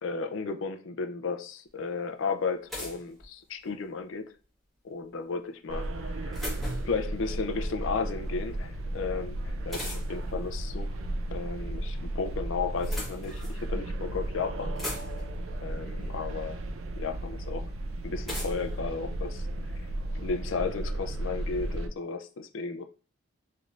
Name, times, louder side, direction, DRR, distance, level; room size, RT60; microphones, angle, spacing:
voice 1, 0.0-4.4 4.8-6.4 6.8-11.0 11.3-14.7 15.6-16.6 17.0-17.7 18.0-19.4 20.1-22.8, left 4 dB, 70° left, 0.5 m, -34 dB
sound 1, 1.7-1.8 2.7-3.8 5.8-7.1 9.7-10.3 11.5-12.1 12.6-13.6 14.3-14.4 14.5-15.4 16.6-16.7 18.3-19.8, left 1 dB, ahead, 1.3 m, -39 dB
sound 2, 5.7-21.9, right 1 dB, 75° right, 0.4 m, -34 dB
3.3 x 3.2 x 2.5 m
head